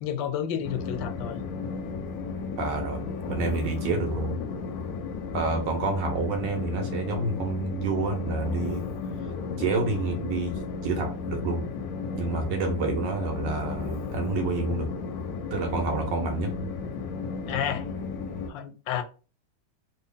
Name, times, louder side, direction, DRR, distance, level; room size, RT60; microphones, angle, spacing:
voice 1, 0.0-1.4 17.5-17.9 18.5-19.0, left 9 dB, 85° left, 1.3 m, -30 dB
Train, 0.6-18.5, left 4 dB, 70° left, 0.9 m, -34 dB
voice 2, 2.6-4.4 5.3-8.9 9.6-11.6 12.1-14.9 15.5-16.5, right 3 dB, 75° right, 1.6 m, -28 dB
3.4 x 2.1 x 3.8 m
omnidirectional pair, 2.0 m